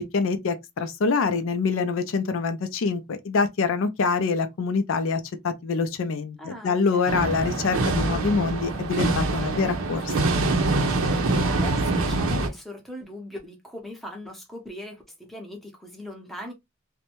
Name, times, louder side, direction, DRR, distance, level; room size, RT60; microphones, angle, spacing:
voice 1, 0.0-10.1, left 4 dB, 65° left, 0.4 m, -25 dB
voice 2, 6.4-7.2 11.2-16.5, left 1 dB, ahead, 0.6 m, -39 dB
sound 1, 7.1-12.5, right 2 dB, 70° right, 0.6 m, -24 dB
2.6 x 2.1 x 2.9 m
head